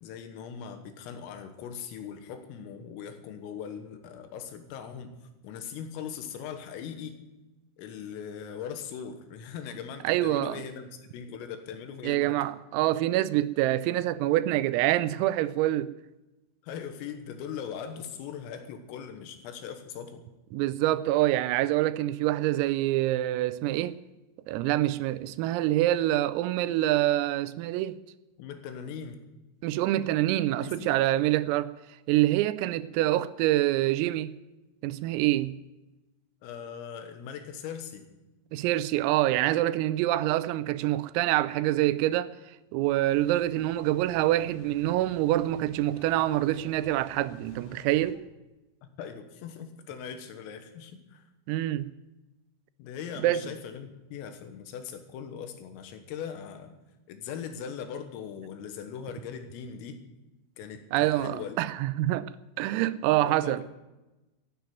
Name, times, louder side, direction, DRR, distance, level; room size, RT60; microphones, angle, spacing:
voice 1, 0.0-5.2 5.4-7.2 7.8-12.4 16.6-20.2 28.4-29.2 30.6-31.0 36.4-38.1 48.8-51.3 52.8-56.7 57.1-60.0 60.6-61.6 63.2-63.6, left 7 dB, 80° left, 3.9 m, -40 dB
voice 2, 10.0-10.6 12.0-15.9 20.5-24.0 24.5-28.0 29.6-31.7 32.1-34.3 34.8-35.5 38.5-42.3 42.7-48.2 51.5-51.9 53.2-53.4 60.9-62.3 62.6-63.6, right 15 dB, 90° right, 3.4 m, -26 dB
sound 1, 43.0-48.1, left 3 dB, 60° left, 4.2 m, -50 dB
14.0 x 9.2 x 9.4 m
omnidirectional pair, 5.9 m